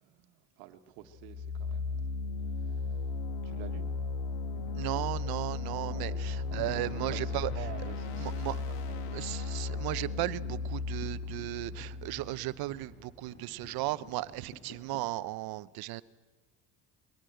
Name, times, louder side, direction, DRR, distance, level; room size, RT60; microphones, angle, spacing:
voice 1, 0.0-2.1 2.6-3.0 3.4-3.9 5.9-9.1, right 12 dB, 90° right, 1.5 m, -49 dB
sound 1, 1.1-12.9, left 4 dB, 80° left, 1.7 m, -36 dB
sound 2, 4.3-15.1, left 1 dB, 35° left, 5.4 m, -51 dB
voice 2, 4.7-7.5 8.2-8.6 9.1-16.0, right 18 dB, 70° right, 0.8 m, -36 dB
22.0 x 19.5 x 7.9 m
cardioid pair, 105°, 38 cm